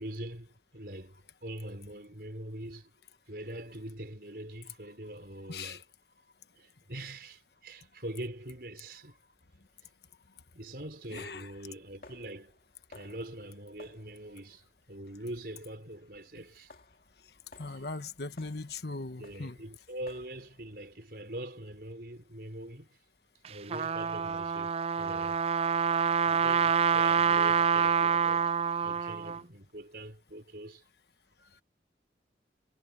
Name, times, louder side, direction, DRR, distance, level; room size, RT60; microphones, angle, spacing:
voice 1, 0.0-2.9 3.3-5.8 6.5-9.2 9.8-9.9 10.6-12.5 12.9-16.7 17.7-17.9 19.2-22.9 23.5-25.4 26.3-28.5 28.8-30.8, right 1 dB, 60° right, 5.2 m, -43 dB
sound 1, 9.1-10.1 11.2-20.8, left 2 dB, 55° left, 2.5 m, -59 dB
voice 2, 11.1-11.5 17.6-19.6, left 3 dB, 70° left, 1.3 m, -39 dB
Trumpet, 23.4-29.4, right 7 dB, 35° right, 0.3 m, -27 dB
head